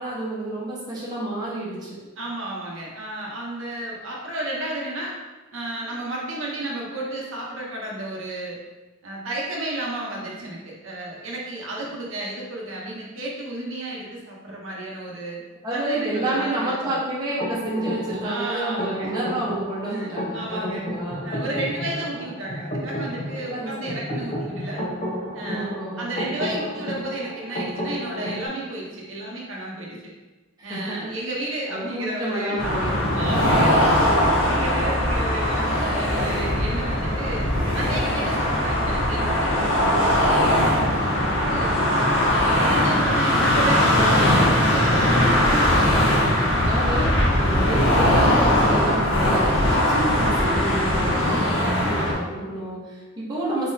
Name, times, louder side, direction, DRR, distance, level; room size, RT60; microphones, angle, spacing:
voice 1, 0.0-2.0 15.6-21.2 21.8-22.0 23.5-24.0 25.5-26.1 30.6-31.1 31.7-34.4 39.5-39.6 45.7-53.7, right 1 dB, 20° right, -8 dB, 1.0 m, -30 dB
voice 2, 2.2-5.1 5.5-8.6 9.0-15.4 15.7-16.7 17.8-19.1 19.9-20.9 21.2-24.8 25.3-30.1 30.6-32.6 32.9-33.8 34.2-37.5 37.7-40.4 40.6-41.8 42.3-45.1 46.2-46.6 51.1-51.6, right 1 dB, 70° right, -3 dB, 0.8 m, -32 dB
sound 1, 17.4-28.5, equal, 35° left, 0.8 m, -32 dB
sound 2, 32.6-52.1, left 1 dB, 65° left, 1.0 m, -20 dB
4.2 x 3.7 x 2.7 m, 1.2 s
head